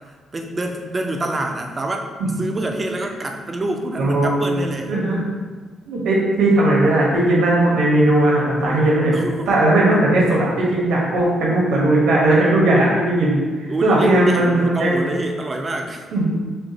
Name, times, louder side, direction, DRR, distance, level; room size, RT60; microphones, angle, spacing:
voice 1, 0.3-2.0 2.4-4.9 9.1-9.6 13.7-16.0, right 2 dB, 25° right, 3 dB, 0.5 m, -26 dB
voice 2, 4.0-4.6 4.9-5.2 5.9-9.2 9.5-15.0 16.1-16.3, right 1 dB, 90° right, -4 dB, 1.2 m, -17 dB
7.1 x 2.4 x 2.9 m, 1.4 s
cardioid pair, 140°, 0 cm